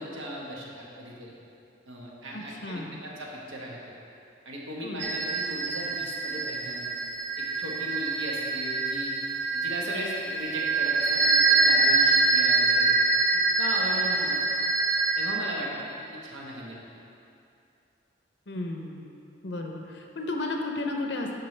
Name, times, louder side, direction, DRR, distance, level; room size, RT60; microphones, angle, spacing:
voice 1, 0.0-1.3 1.9-3.8 4.4-6.9 7.4-9.1 9.5-13.1 13.6-14.6 15.1-16.8, equal, 85° right, -3 dB, 1.3 m, -37 dB
voice 2, 2.3-3.0 4.8-5.1 18.5-19.1 19.4-21.3, left 2 dB, 65° left, 2 dB, 0.6 m, -33 dB
sound 1, 5.0-15.3, right 3 dB, 70° right, 0.8 m, -25 dB
11.5 x 4.7 x 3.3 m, 2.6 s
head